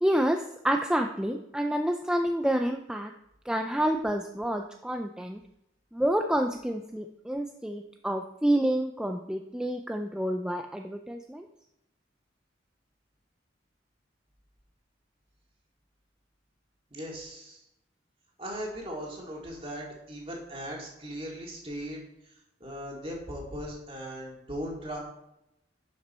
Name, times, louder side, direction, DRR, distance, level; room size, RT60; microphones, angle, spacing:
voice 1, 0.0-3.1 3.5-5.4 5.9-11.5, right 1 dB, 5° right, 4 dB, 0.4 m, -28 dB
voice 2, 16.9-17.6 18.4-22.0 22.6-25.0, equal, 30° right, -2 dB, 2.3 m, -38 dB
11.5 x 5.8 x 4.3 m, 0.85 s
head